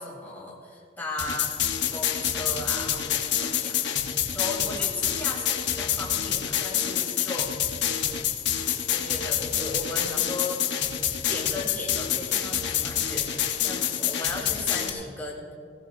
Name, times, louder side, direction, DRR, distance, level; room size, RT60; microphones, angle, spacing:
voice 1, 0.0-1.5 1.9-3.7 4.3-7.5 7.9-8.0 8.9-10.6 11.3-15.5, left 2 dB, 10° left, -4 dB, 3.4 m, -36 dB
sound 1, 1.2-14.9, left 9 dB, 65° left, 1.0 m, -27 dB
19.5 x 18.0 x 2.6 m, 2.4 s
head